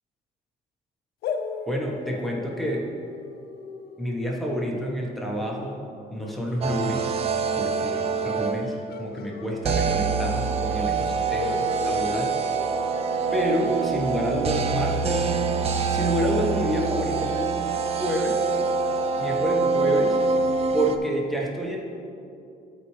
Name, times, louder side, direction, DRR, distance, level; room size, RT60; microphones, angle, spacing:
sound 1, 1.2-6.7 8.9-10.4 10.6-10.7 11.4-13.6, left 4 dB, 65° left, 0.6 m, -38 dB
voice 1, 1.7-2.9 4.0-5.8 6.1-7.2 7.5-11.5 11.8-12.4 13.3-15.3 15.9-17.6 18.0-18.5 19.2-20.2 20.7-21.8, equal, ahead, -2 dB, 1.1 m, -28 dB
sound 2, 6.6-8.9 9.6-21.0, right 4 dB, 35° right, 0.5 m, -25 dB
12.5 x 4.7 x 3.2 m, 2.7 s
cardioid pair, 110°, 17 cm